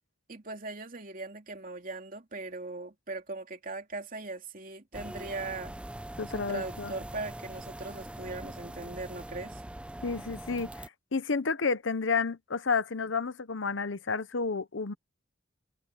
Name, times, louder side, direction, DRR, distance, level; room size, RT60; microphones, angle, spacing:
voice 1, 0.3-5.7 6.3-9.6, right 3 dB, 45° right, 2.7 m, -39 dB
sound 1, 4.9-10.9, right 1 dB, 5° right, 0.3 m, -42 dB
voice 2, 6.2-6.9 10.0-10.9 11.1-14.9, left 4 dB, 65° left, 0.9 m, -31 dB
head